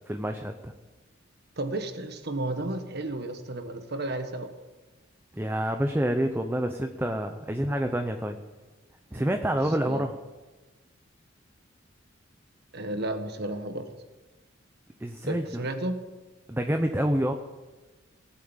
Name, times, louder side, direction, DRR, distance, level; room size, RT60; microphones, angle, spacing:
voice 1, 0.1-0.7 5.3-8.4 9.1-10.1 15.0-15.6 16.5-17.3, right 1 dB, 10° right, 5 dB, 0.7 m, -27 dB
voice 2, 1.6-4.5 9.1-9.3 9.6-10.1 12.7-13.9 15.2-16.0, right 2 dB, 55° right, 7 dB, 1.5 m, -33 dB
17.5 x 8.6 x 7.4 m, 1.2 s
head